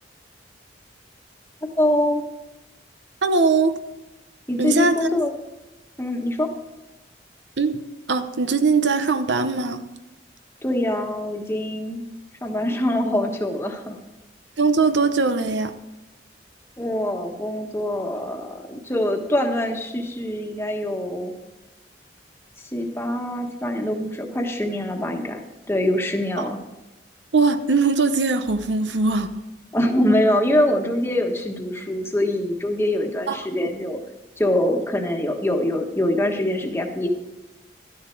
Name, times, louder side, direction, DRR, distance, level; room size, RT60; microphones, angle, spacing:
voice 1, 1.8-2.2 4.5-5.3 6.0-6.5 10.6-12.0 12.4-14.0 16.8-21.3 22.7-25.4 25.7-26.6 29.7-34.0 34.4-37.1, left 1 dB, 15° left, 1.3 m, -24 dB
voice 2, 3.2-3.8 4.6-5.1 7.6-7.8 8.1-9.8 14.6-15.8 26.4-26.5 27.3-29.3 33.3-33.4, right 4 dB, 80° right, 0.8 m, -20 dB
13.0 x 10.5 x 4.6 m
head